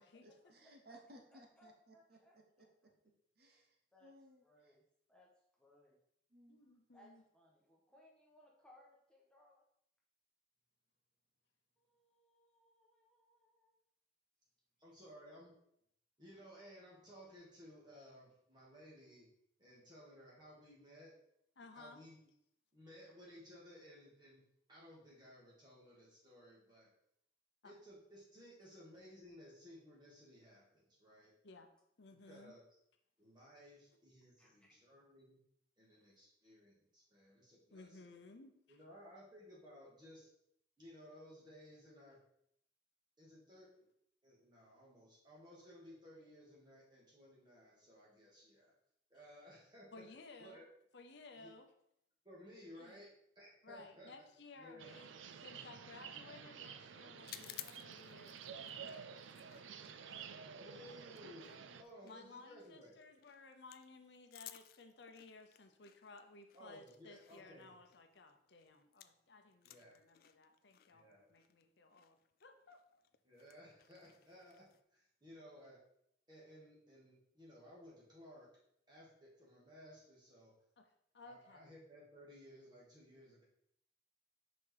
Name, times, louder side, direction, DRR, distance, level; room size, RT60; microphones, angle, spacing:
voice 1, 0.0-2.2 2.6-2.9 3.4-4.7 6.3-6.6, right 1 dB, 55° right, 2 dB, 0.9 m, -62 dB
voice 2, 1.3-2.7 3.9-4.1 4.4-4.8 5.1-5.3 5.6-6.0 6.6-9.6 11.8-13.8 34.4-34.7, left 1 dB, 5° left, -3 dB, 1.3 m, -67 dB
voice 3, 6.5-7.2 21.6-22.0 27.6-27.7 31.4-31.7 32.0-32.5 37.7-38.8 49.9-50.6 50.9-51.7 52.8-53.1 53.6-59.5 62.0-72.8 80.8-80.9 81.1-81.6, left 3 dB, 65° left, 6 dB, 0.8 m, -58 dB
voice 4, 14.8-15.5 16.2-19.3 19.6-21.1 21.7-22.2 22.7-24.4 24.7-26.9 27.6-31.3 32.1-32.6 33.2-35.4 35.8-38.0 38.7-40.3 40.8-42.2 43.2-43.7 44.2-48.7 49.1-50.0 50.4-50.7 51.4-51.5 52.2-54.1 54.6-55.0 60.5-61.5 61.8-62.9 66.5-67.7 69.6-69.9 70.9-71.2 73.2-74.7 74.9-75.8 76.3-78.5 78.9-80.5 81.2-83.4, equal, 25° right, -6 dB, 2.4 m, -58 dB
sound 1, 54.8-61.8, right 6 dB, 85° right, 0.5 m, -51 dB
sound 2, 57.2-69.3 69.5-74.8, left 13 dB, 50° left, 0.3 m, -58 dB
5.8 x 5.2 x 4.7 m, 0.74 s
head